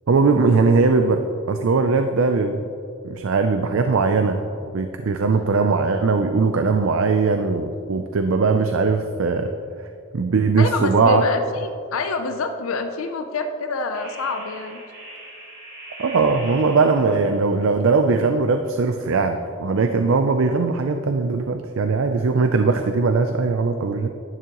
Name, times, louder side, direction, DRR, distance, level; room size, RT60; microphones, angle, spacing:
voice 1, 0.1-1.2 1.5-2.6 3.0-4.4 4.7-9.5 10.1-11.2 16.0-24.1, right 4 dB, 70° right, 6 dB, 0.5 m, -20 dB
voice 2, 10.6-14.8, left 3 dB, 80° left, 6 dB, 0.5 m, -26 dB
sound 1, 12.8-13.0 13.9-17.3, right 2 dB, 40° right, 2.0 m, -40 dB
11.0 x 9.5 x 3.0 m, 2.5 s
head